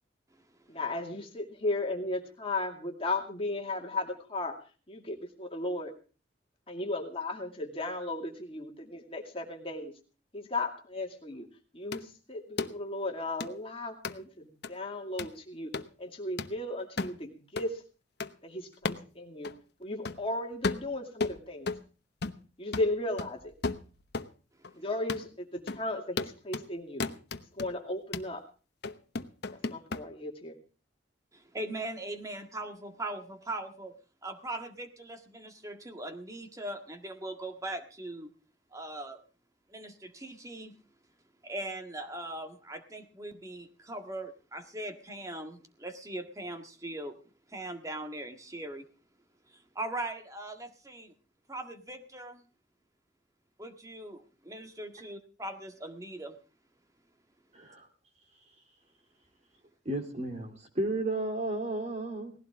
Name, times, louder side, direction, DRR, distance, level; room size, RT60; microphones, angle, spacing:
voice 1, 0.7-4.5 4.9-5.9 6.7-9.9 10.3-11.5 11.7-15.7 16.0-17.8 18.4-19.5 19.8-21.7 22.6-23.5 24.8-27.0 27.6-28.4 29.7-30.5, left 2 dB, 30° left, 2 dB, 2.4 m, -35 dB
sound 1, 11.9-12.0 12.6-12.7 13.4-13.5 14.0-14.2 14.6-14.7 15.2-15.4 15.7-15.9 16.4-16.5 17.0-17.2 17.6-17.7 18.2-18.3 18.8-19.1 19.4-19.5 20.0-20.2 20.6-21.9 22.2-22.5 22.7-24.3 24.6-24.7 25.1-25.3 25.7-25.8 26.2-26.7 27.0-27.7 28.1-28.3 28.8-30.0, left 3 dB, 60° left, 1.0 m, -35 dB
voice 2, 31.3-33.9 34.2-38.3 38.7-39.2 39.7-40.7 41.4-47.2 47.5-48.8 49.5-51.1 51.5-52.4 53.6-56.3, right 1 dB, 20° right, 6 dB, 1.7 m, -40 dB
voice 3, 57.5-57.9 59.8-62.3, right 2 dB, 40° right, 5 dB, 3.2 m, -33 dB
19.0 x 16.0 x 3.6 m, 0.37 s
head